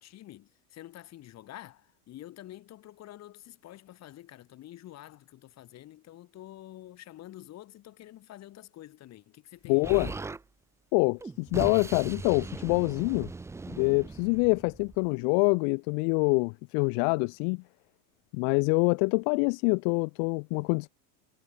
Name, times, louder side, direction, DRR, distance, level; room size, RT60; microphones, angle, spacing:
voice 1, 0.0-10.2, left 14 dB, 35° left, 4.1 m, -48 dB
voice 2, 9.7-10.1 10.9-13.3 13.7-17.6 18.3-20.9, left 40 dB or more, 50° left, 1.0 m, -26 dB
Explosion, 9.8-10.4 11.2-15.1, right 3 dB, 5° right, 0.6 m, -39 dB
supercardioid pair, 150°, 46 cm